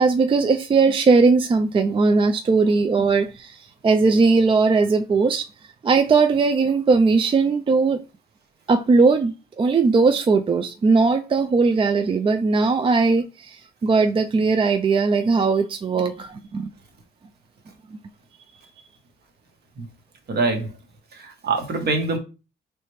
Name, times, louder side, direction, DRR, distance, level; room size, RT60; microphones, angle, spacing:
voice 1, 0.0-5.5 5.8-8.0 8.7-16.7, right 4 dB, 25° right, 0.3 m, -19 dB
voice 2, 20.3-20.7 21.1-22.2, right 3 dB, 55° right, 1.2 m, -24 dB
4.1 x 3.2 x 3.2 m
cardioid pair, 90°, 20 cm